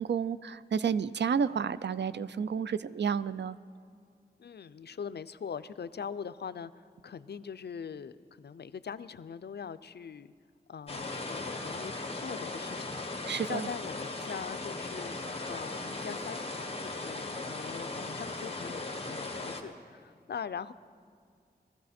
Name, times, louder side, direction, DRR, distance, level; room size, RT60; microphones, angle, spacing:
voice 1, 0.0-3.6 13.3-13.7, right 6 dB, 90° right, 15 dB, 0.4 m, -31 dB
voice 2, 4.4-10.3 10.7-20.7, left 7 dB, 70° left, 14 dB, 0.4 m, -42 dB
sound 1, 10.9-19.6, left 2 dB, 35° left, 1.3 m, -38 dB
20.0 x 14.5 x 4.3 m, 2.2 s
wide cardioid pair, 90°, 18 cm